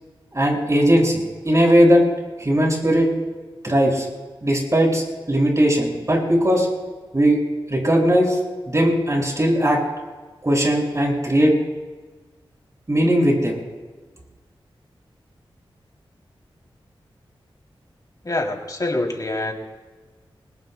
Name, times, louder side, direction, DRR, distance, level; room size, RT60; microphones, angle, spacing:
voice 1, 0.3-2.0 2.4-3.1 3.6-4.1 4.4-6.7 7.1-7.4 7.7-8.4 8.7-9.8 10.4-11.5 12.9-13.6, equal, 30° right, -1 dB, 6.3 m, -18 dB
voice 2, 18.2-19.5, left 2 dB, 40° left, 1 dB, 3.2 m, -25 dB
23.0 x 21.0 x 2.3 m, 1.3 s
cardioid pair, 50°, 10 cm